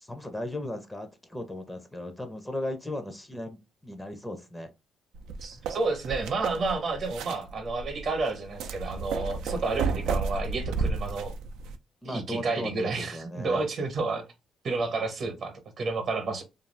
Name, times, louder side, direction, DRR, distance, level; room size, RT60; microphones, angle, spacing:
voice 1, 0.0-4.7 5.5-5.6 12.0-13.6, left 1 dB, 10° left, 0.5 m, -36 dB
sound 1, 5.1-11.8, right 4 dB, 90° right, 0.3 m, -33 dB
voice 2, 5.4-11.3 12.0-14.3 14.6-16.4, right 3 dB, 60° right, 0.8 m, -30 dB
2.4 x 2.3 x 3.2 m
cardioid pair, 90°, 0 cm